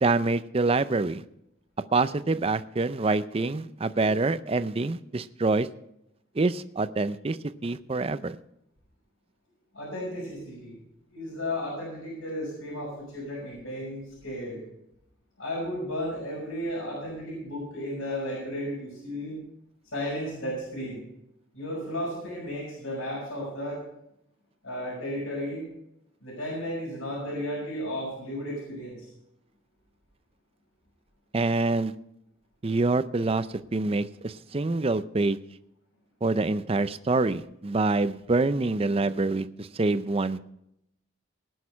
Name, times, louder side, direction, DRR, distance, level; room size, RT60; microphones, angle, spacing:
voice 1, 0.0-1.2 1.9-5.7 6.4-7.4 7.6-8.4 31.3-31.9 32.6-35.4 36.2-40.4, right 3 dB, 30° right, 13 dB, 0.5 m, -26 dB
voice 2, 9.7-10.8 11.1-14.6 15.4-19.4 19.9-21.0 21.5-23.8 24.6-25.6 26.2-29.1, equal, 80° left, -7 dB, 6.2 m, -34 dB
19.5 x 6.5 x 5.7 m, 0.79 s
head